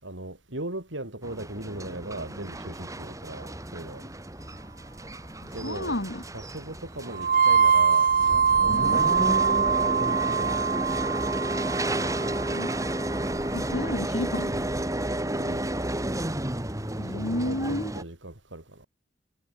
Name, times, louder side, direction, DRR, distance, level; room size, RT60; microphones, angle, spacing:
voice 1, 0.0-4.1 5.5-6.0 6.3-10.6 12.0-12.7 15.4-15.7 17.1-18.9, right 1 dB, 80° right, 6.4 m, -39 dB
sound 1, 1.2-18.0, right 1 dB, 20° right, 3.0 m, -32 dB
voice 2, 5.4-6.2 8.7-9.0 12.5-12.7 13.5-14.8 17.0-17.9, left 1 dB, 70° left, 4.5 m, -32 dB
sound 2, 7.1-13.1, right 6 dB, 50° right, 0.8 m, -23 dB
head